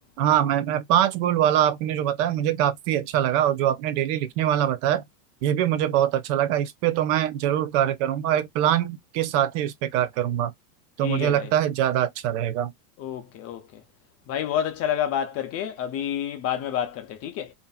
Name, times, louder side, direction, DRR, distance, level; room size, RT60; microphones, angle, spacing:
voice 1, 0.2-5.0 5.4-10.5 11.0-12.7, right 11 dB, 50° right, 0.5 m, -23 dB
voice 2, 11.0-11.5 13.0-13.8 14.3-17.5, left 9 dB, 35° left, 0.4 m, -29 dB
2.5 x 2.5 x 2.2 m
supercardioid pair, 115°, 48 cm